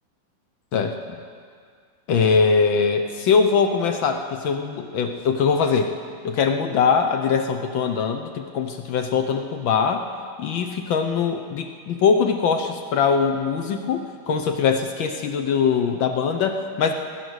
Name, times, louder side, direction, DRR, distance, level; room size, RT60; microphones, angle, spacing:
voice 1, 0.7-1.2 2.1-5.9 6.2-10.1 10.4-16.9, left 6 dB, 70° left, 5 dB, 1.5 m, -22 dB
19.0 x 11.0 x 6.3 m, 2.2 s
omnidirectional pair, 2.3 m